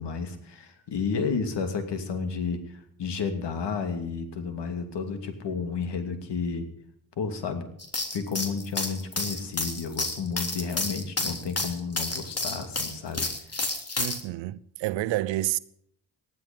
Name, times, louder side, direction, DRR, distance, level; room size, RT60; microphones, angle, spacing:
voice 1, 0.0-6.7 7.2-7.7 8.1-13.6, left 5 dB, 65° left, 2.7 m, -32 dB
sound 1, 7.8-14.2, left 2 dB, 35° left, 3.3 m, -30 dB
voice 2, 14.0-15.6, right 16 dB, 80° right, 0.8 m, -29 dB
19.0 x 12.5 x 5.3 m
hypercardioid pair, 45°, 45 cm